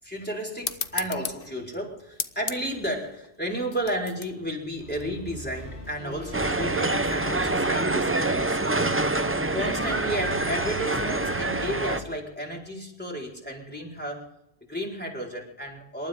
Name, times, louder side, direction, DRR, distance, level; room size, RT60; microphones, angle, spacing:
voice 1, 0.0-8.9 9.5-14.2 14.6-16.1, right 1 dB, 10° left, -2 dB, 4.5 m, -33 dB
sound 1, 0.6-5.7, left 6 dB, 60° left, 1.1 m, -37 dB
sound 2, 4.8-12.1, right 2 dB, 75° left, 4.0 m, -41 dB
sound 3, 6.3-12.0, right 2 dB, 15° right, 0.6 m, -26 dB
27.0 x 13.0 x 3.7 m, 0.84 s
omnidirectional pair, 1.1 m